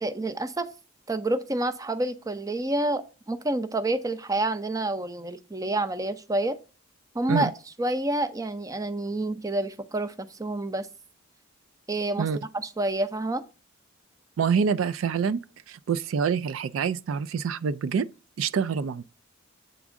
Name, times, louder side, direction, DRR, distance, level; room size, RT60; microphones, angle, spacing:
voice 1, 0.0-0.7 1.1-6.6 7.1-7.5 7.8-10.9 11.9-13.4, right 2 dB, 15° right, 0.5 m, -28 dB
voice 2, 14.4-15.4 15.7-18.1 18.4-19.0, right 6 dB, 75° right, 0.3 m, -26 dB
8.1 x 3.6 x 6.1 m
head